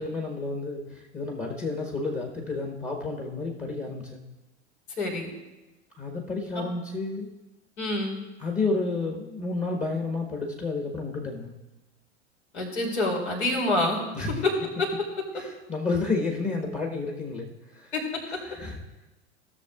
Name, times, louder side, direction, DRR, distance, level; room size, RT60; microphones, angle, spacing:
voice 1, 0.0-4.2 6.0-7.3 8.4-11.5 14.1-14.3 15.3-17.9 18.3-18.8, left 3 dB, 20° left, 1 dB, 1.3 m, -31 dB
voice 2, 5.0-5.3 7.8-8.2 12.5-14.0 14.8-14.9 17.9-18.0, left 2 dB, 75° left, -1 dB, 2.9 m, -26 dB
16.5 x 6.7 x 2.4 m, 1.1 s
figure-of-eight pair, 85°, 34 cm